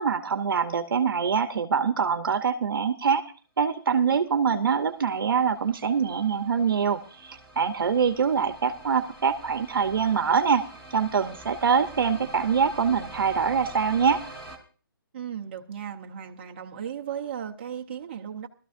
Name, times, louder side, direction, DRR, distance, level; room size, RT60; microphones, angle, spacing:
voice 1, 0.0-3.2 3.6-10.6 10.9-14.2, right 6 dB, 65° right, 8 dB, 0.8 m, -24 dB
sound 1, 4.6-14.6, right 1 dB, 5° left, 1.0 m, -46 dB
voice 2, 15.1-18.5, right 8 dB, 30° right, 2 dB, 0.7 m, -36 dB
18.0 x 13.0 x 2.5 m, 0.39 s
hypercardioid pair, 170°, 12 cm